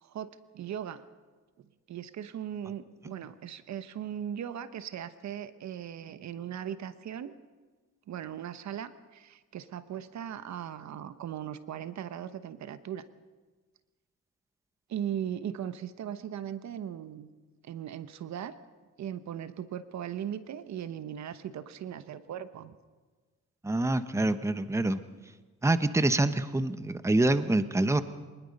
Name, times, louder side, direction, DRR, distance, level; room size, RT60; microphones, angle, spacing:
voice 1, 0.0-1.0 1.6-7.3 8.1-13.1 14.9-17.3 17.6-18.5 19.0-22.8, right 9 dB, 65° right, 12 dB, 1.1 m, -38 dB
voice 2, 23.6-25.0 25.6-28.0, right 2 dB, 10° right, 11 dB, 1.0 m, -26 dB
24.5 x 20.0 x 5.4 m, 1.3 s
cardioid pair, 90°, 30 cm